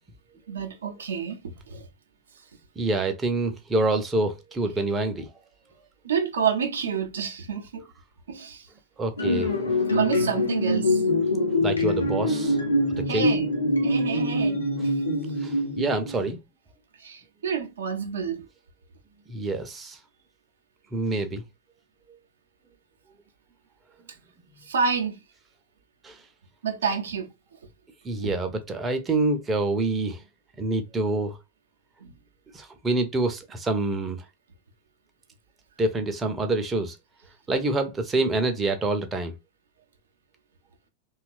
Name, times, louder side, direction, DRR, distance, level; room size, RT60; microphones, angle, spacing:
voice 1, 0.5-1.9 6.0-7.8 8.3-8.7 9.9-11.0 13.1-13.5 13.8-14.9 17.0-18.5 24.6-25.2 26.6-27.6 32.0-32.1, right 6 dB, 65° right, 0.5 m, -29 dB
voice 2, 2.8-5.3 9.0-9.5 11.6-12.6 13.1-13.3 15.4-16.4 19.3-20.0 20.9-21.4 26.0-26.2 28.0-30.2 30.6-31.4 32.5-34.2 35.8-37.0 37.5-39.4, right 2 dB, 15° right, 0.5 m, -26 dB
sound 1, 9.2-16.3, left 1 dB, 80° left, 0.7 m, -24 dB
2.8 x 2.2 x 2.4 m
figure-of-eight pair, 90°, 0 cm